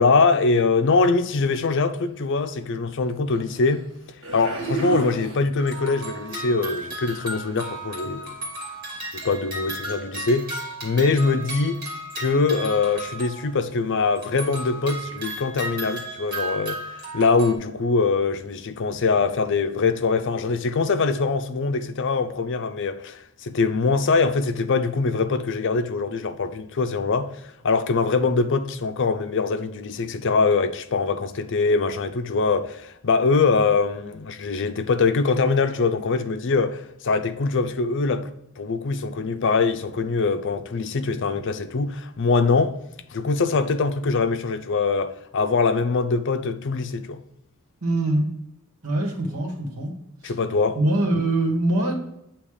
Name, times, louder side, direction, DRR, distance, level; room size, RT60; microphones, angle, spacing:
voice 1, 0.0-3.9 4.3-8.4 9.1-10.5 10.8-11.8 12.2-27.3 27.6-42.8 43.1-47.2 50.2-50.8, left 4 dB, 55° left, 0.5 m, -23 dB
sound 1, 2.3-2.5 3.3-3.8 4.2-5.8 6.2-6.5 6.8-7.5 8.3-8.4, right 5 dB, 55° right, 1.6 m, -33 dB
sound 2, 5.6-13.8 14.1-17.5, right 1 dB, 40° right, 2.2 m, -35 dB
voice 2, 47.8-48.2 48.8-49.9 50.2-50.3 50.8-51.9, right 1 dB, 80° right, 1.7 m, -23 dB
8.7 x 2.9 x 4.9 m
head